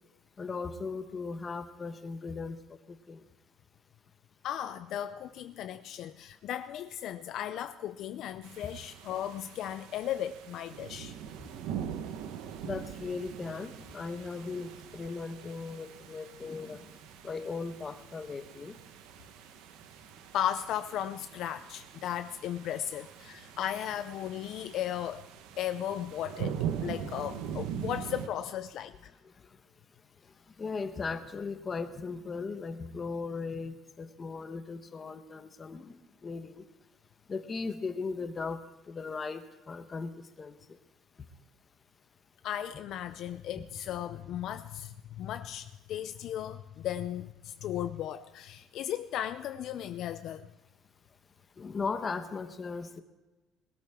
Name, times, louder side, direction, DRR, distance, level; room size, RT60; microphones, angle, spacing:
voice 1, 0.4-2.6 2.9-3.2 11.4-11.5 12.6-16.8 17.2-18.7 30.6-36.0 36.2-36.6 37.3-40.1 40.4-40.6 51.6-53.0, left 4 dB, 20° left, 8 dB, 1.0 m, -37 dB
voice 2, 4.4-11.1 20.3-25.2 25.6-26.5 26.8-29.1 42.4-50.5, left 11 dB, 55° left, 10 dB, 0.5 m, -36 dB
sound 1, 8.4-28.3, right 8 dB, 80° right, 1.1 m, -42 dB
20.0 x 13.0 x 3.6 m, 1.2 s
cardioid pair, 155°, 0 cm